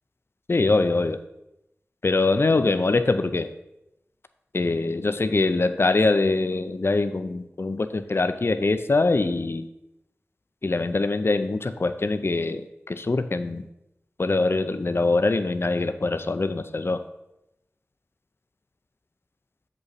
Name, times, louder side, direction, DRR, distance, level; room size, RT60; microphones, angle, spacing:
voice 1, 0.5-1.2 2.0-3.5 4.5-9.7 10.6-13.7 14.2-17.0, left 3 dB, 50° left, 10 dB, 0.5 m, -23 dB
7.2 x 5.3 x 4.1 m, 0.88 s
wide cardioid pair, 45°, 5 cm